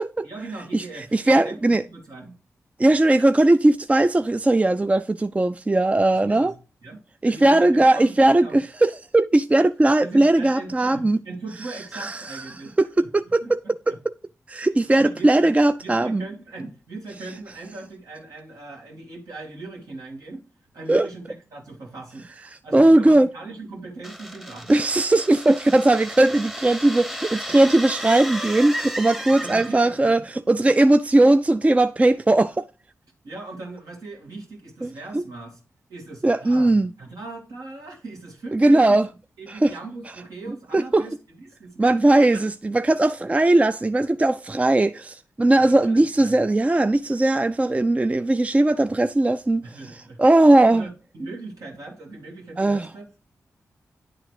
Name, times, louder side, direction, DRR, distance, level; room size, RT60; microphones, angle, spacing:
voice 1, 0.2-2.3 6.1-6.5 6.8-8.6 10.0-13.1 13.4-14.0 14.6-20.4 20.7-22.3 22.6-24.8 29.3-30.2 33.2-35.6 35.9-39.0 39.4-41.9 42.3-42.5 45.6-46.4 49.6-50.2 50.7-53.2, right 3 dB, 80° right, 2.3 m, -39 dB
voice 2, 1.1-1.8 2.8-6.5 7.2-11.2 11.9-12.4 12.8-12.9 13.1-13.6 13.9-14.0 14.5-16.2 20.9-21.1 22.7-23.3 24.7-32.6 34.8-34.9 36.2-36.9 38.5-39.1 39.6-39.7 40.7-41.0 41.8-49.6 50.2-50.9 52.6-52.9, right 2 dB, 20° right, 0.4 m, -18 dB
sound 1, 24.0-30.0, equal, 5° right, 0.8 m, -34 dB
9.9 x 3.8 x 4.8 m
cardioid pair, 45°, 6 cm